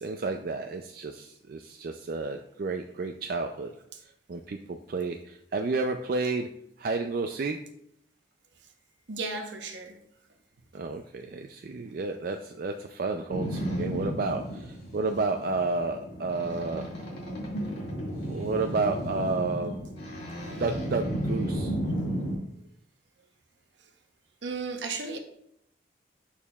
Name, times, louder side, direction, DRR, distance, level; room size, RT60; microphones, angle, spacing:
voice 1, 0.0-3.7 4.3-6.5 6.8-7.6 10.7-16.9 18.3-19.8 20.6-21.7, right 3 dB, 50° right, 5 dB, 0.3 m, -31 dB
voice 2, 9.1-10.0 24.4-25.2, right 4 dB, 70° right, 5 dB, 0.9 m, -34 dB
Boat Water vehicle, 13.3-22.3, equal, 55° left, 2.1 m, -33 dB
7.1 x 6.5 x 2.3 m, 0.75 s
head